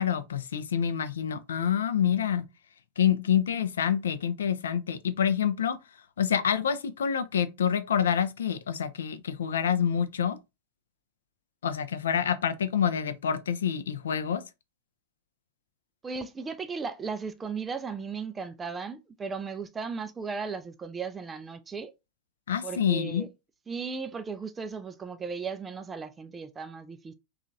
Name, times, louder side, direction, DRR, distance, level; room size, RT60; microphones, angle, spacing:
voice 1, 0.0-2.4 3.0-5.8 6.2-10.4 11.6-14.4 22.5-23.3, left 8 dB, 65° left, 0.3 m, -27 dB
voice 2, 16.0-21.9 22.6-23.3 23.7-27.1, right 5 dB, 15° right, 0.3 m, -36 dB
2.7 x 2.3 x 2.6 m
figure-of-eight pair, 90°, 0 cm